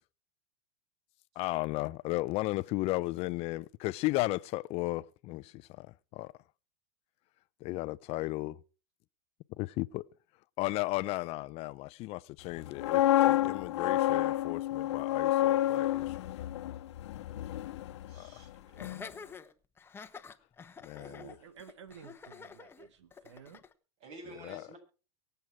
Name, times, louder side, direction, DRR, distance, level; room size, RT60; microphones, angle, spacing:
voice 1, 1.4-5.9 6.1-6.3 7.6-8.6 9.6-10.0 10.6-16.1 18.1-18.3 20.8-21.3 24.4-24.6, left 20 dB, 45° left, 0.7 m, -35 dB
sound 1, 12.6-18.5 18.8-19.0, left 14 dB, 75° left, 1.1 m, -29 dB
voice 2, 18.1-19.0 24.0-24.8, right 2 dB, 45° right, 7.0 m, -50 dB
Laughter, 18.8-23.7, left 5 dB, 15° left, 1.1 m, -48 dB
voice 3, 21.0-23.6, right 7 dB, 85° right, 1.8 m, -52 dB
24.0 x 8.0 x 4.8 m
hypercardioid pair, 120°, 15 cm